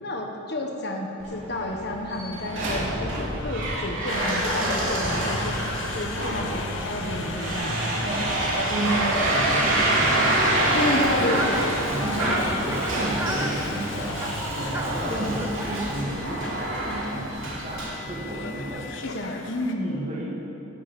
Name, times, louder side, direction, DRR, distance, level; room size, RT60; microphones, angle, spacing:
voice 1, 0.0-5.6 5.9-8.0 10.7-11.6 12.0-12.7 19.0-20.0, left 1 dB, 50° left, 1 dB, 1.4 m, -31 dB
sound 1, 1.2-18.7, right 1 dB, 70° right, 3.4 m, -27 dB
Conversation, 4.1-19.7, left 5 dB, 70° left, 1.1 m, -39 dB
voice 2, 8.1-10.9 11.2-11.3 11.9-19.0 19.8-20.3, right 1 dB, 35° right, -5 dB, 2.4 m, -32 dB
Fowl, 10.8-16.0, right 1 dB, 10° right, 0.7 m, -34 dB
14.0 x 8.7 x 8.8 m, 2.9 s
head